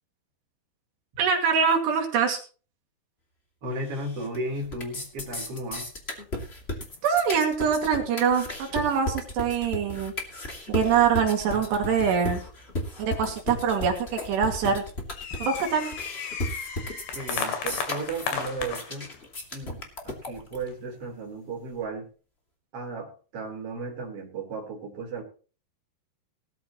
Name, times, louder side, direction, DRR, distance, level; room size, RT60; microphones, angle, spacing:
voice 1, 1.2-2.4 7.0-10.1 10.7-12.4 13.0-14.8 15.4-15.9, right 6 dB, 75° right, 3 dB, 4.3 m, -24 dB
voice 2, 3.6-5.9 17.1-19.1 19.5-22.1 22.7-25.2, right 2 dB, 35° right, 1 dB, 4.5 m, -35 dB
sound 1, 3.9-4.4 4.6-20.6, left 1 dB, 20° left, 1.9 m, -34 dB
sound 2, 4.4-4.8 5.0-5.1 5.8-5.9 6.7-7.2 7.8-8.2 8.9-9.7 10.3-10.4 10.7-10.8 11.5-12.1 12.7-12.8 13.4-13.5 13.7-14.0 14.6-19.3 19.8-19.9 20.6-20.9, left 6 dB, 85° left, 4.8 m, -35 dB
18.5 x 13.0 x 3.0 m, 0.37 s
omnidirectional pair, 4.9 m